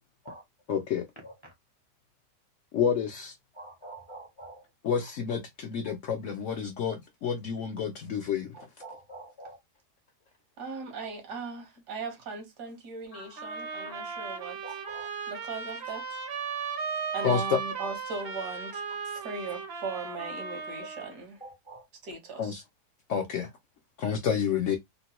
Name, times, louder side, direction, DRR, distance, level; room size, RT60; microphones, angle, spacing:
voice 1, 0.7-1.0 2.7-3.3 4.8-8.5 13.1-13.2 13.9-14.0 17.2-17.6 22.4-22.6 23.1-23.5 24.0-24.8, left 7 dB, 65° left, 0.8 m, -29 dB
voice 2, 3.6-4.6 8.5-9.6 14.6-15.1 21.4-21.8, right 2 dB, 30° left, 0.6 m, -45 dB
voice 3, 10.6-14.8 15.3-16.0 17.1-18.8 19.2-21.4 22.0-22.6, right 4 dB, 80° right, 1.7 m, -38 dB
sound 1, 13.4-21.1, right 5 dB, 50° right, 0.7 m, -36 dB
3.7 x 2.2 x 2.8 m
omnidirectional pair, 1.7 m